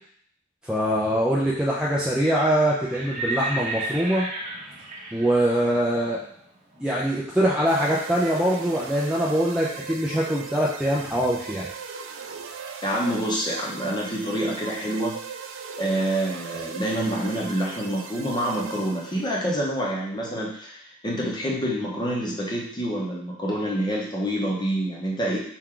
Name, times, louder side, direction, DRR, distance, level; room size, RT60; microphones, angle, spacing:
voice 1, 0.6-4.3 5.1-6.2 6.8-11.7, equal, 5° right, -6 dB, 0.4 m, -23 dB
Livestock farm animals working animals, 2.2-8.0, right 2 dB, 35° right, 0.9 m, -35 dB
sound 1, 7.7-19.4, right 6 dB, 65° right, 0.4 m, -38 dB
voice 2, 12.8-15.2 15.8-25.4, right 1 dB, 20° left, -3 dB, 0.8 m, -27 dB
4.4 x 2.4 x 3.7 m, 0.65 s
head